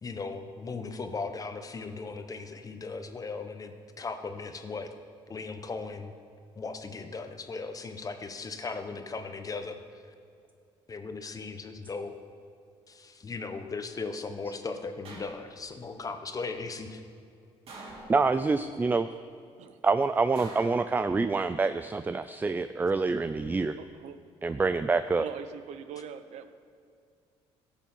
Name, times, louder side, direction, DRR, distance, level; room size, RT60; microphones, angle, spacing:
voice 1, 0.0-4.9 5.3-6.1 6.6-9.8 10.9-12.2 12.9-17.0, left 4 dB, 30° left, 7 dB, 1.0 m, -37 dB
sound 1, 15.0-15.8 17.7-18.6 20.3-21.5 22.9-23.4, right 2 dB, 55° right, 2.3 m, -47 dB
voice 2, 18.1-19.1 19.8-23.8 24.4-25.3, right 4 dB, 15° right, 11 dB, 0.3 m, -26 dB
voice 3, 23.8-24.2 25.2-26.5, right 8 dB, 75° right, 11 dB, 0.7 m, -42 dB
13.5 x 7.2 x 5.5 m, 2.4 s
cardioid pair, 95°, 12 cm